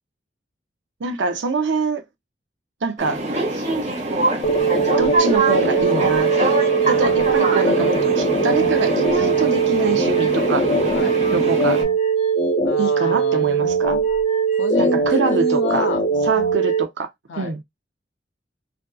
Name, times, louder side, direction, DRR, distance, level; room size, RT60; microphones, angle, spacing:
voice 1, 1.0-2.0 2.8-3.2 5.0-6.3 6.9-10.7 11.3-11.8 12.8-14.0 14.8-15.9 16.2-17.1 17.4-17.6, right 4 dB, 80° right, 0.5 m, -24 dB
sound 1, 3.0-11.8, right 2 dB, 40° right, 1.1 m, -24 dB
sound 2, 4.4-16.8, right 5 dB, 40° left, 0.3 m, -20 dB
voice 2, 10.9-11.3 12.6-13.4 14.6-16.0 17.3-17.6, left 2 dB, 85° left, 0.6 m, -28 dB
2.6 x 2.3 x 2.2 m
head